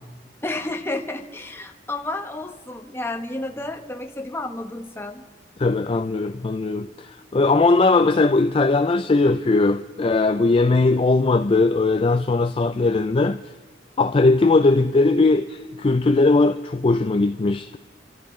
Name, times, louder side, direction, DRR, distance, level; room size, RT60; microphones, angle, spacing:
voice 1, 0.4-5.3, left 2 dB, 15° left, 1.0 m, -31 dB
voice 2, 5.6-13.4 14.0-17.8, left 3 dB, 30° left, 0.4 m, -19 dB
27.0 x 13.5 x 3.2 m
head